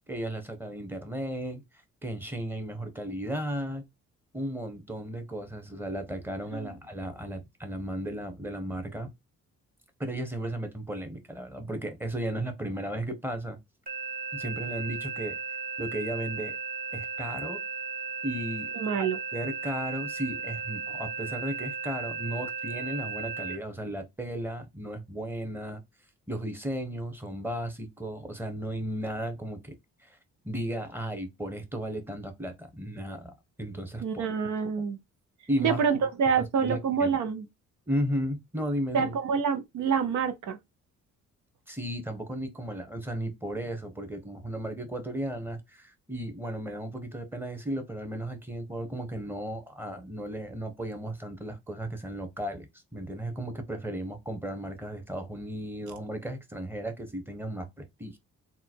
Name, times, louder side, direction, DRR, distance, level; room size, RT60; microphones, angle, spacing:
voice 1, 0.1-1.6 2.0-3.8 4.3-9.1 10.0-13.6 14.3-15.4 15.8-16.6 16.9-17.6 18.2-18.7 19.0-19.1 19.3-25.8 26.3-29.8 30.0-30.2 30.4-34.3 35.5-35.8 36.4-37.1 37.9-39.1 41.7-58.2, right 1 dB, 5° right, 1.1 m, -35 dB
sound 1, 13.9-23.6, right 5 dB, 30° right, 1.1 m, -35 dB
voice 2, 18.8-19.2 34.0-35.0 35.6-37.4 38.9-40.6, right 6 dB, 75° right, 0.7 m, -27 dB
3.7 x 2.4 x 4.4 m
cardioid pair, 90°, 30 cm